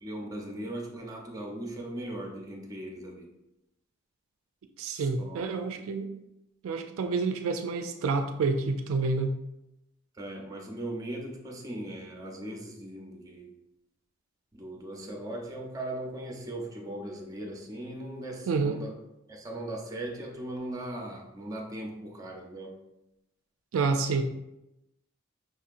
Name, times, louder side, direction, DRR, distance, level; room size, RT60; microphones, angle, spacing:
voice 1, 0.0-3.3 4.9-5.5 10.1-13.5 14.5-18.9 19.3-22.8, right 1 dB, 15° right, 1 dB, 0.6 m, -39 dB
voice 2, 4.8-6.2 6.6-9.3 18.5-18.8 23.7-24.2, right 4 dB, 75° right, 6 dB, 0.3 m, -28 dB
5.3 x 2.8 x 2.5 m, 0.90 s
head